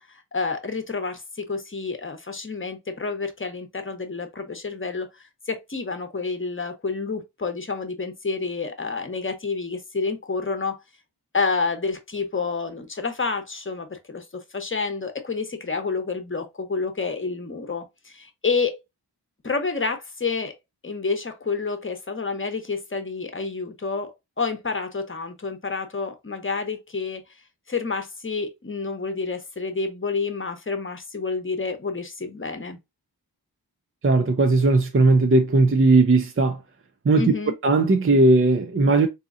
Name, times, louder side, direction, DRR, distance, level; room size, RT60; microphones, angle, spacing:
voice 1, 0.0-10.8 11.3-18.8 19.4-20.5 20.8-27.2 27.7-32.8 37.2-37.5, left 4 dB, 30° left, 0.9 m, -29 dB
voice 2, 34.0-36.6 37.1-37.3 37.6-39.1, right 3 dB, 35° right, 0.5 m, -18 dB
3.7 x 2.8 x 2.5 m
wide cardioid pair, 50°, 39 cm